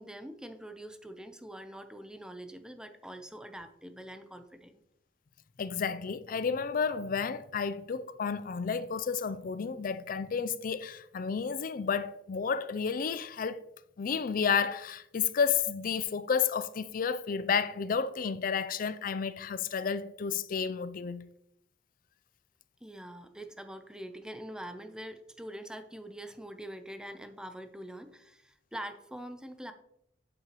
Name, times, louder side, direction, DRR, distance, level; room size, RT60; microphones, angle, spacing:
voice 1, 0.0-4.8 22.8-29.7, right 1 dB, 5° right, 0.6 m, -44 dB
voice 2, 5.6-13.6 14.0-21.3, left 6 dB, 45° left, 0.4 m, -31 dB
8.9 x 7.5 x 3.0 m
head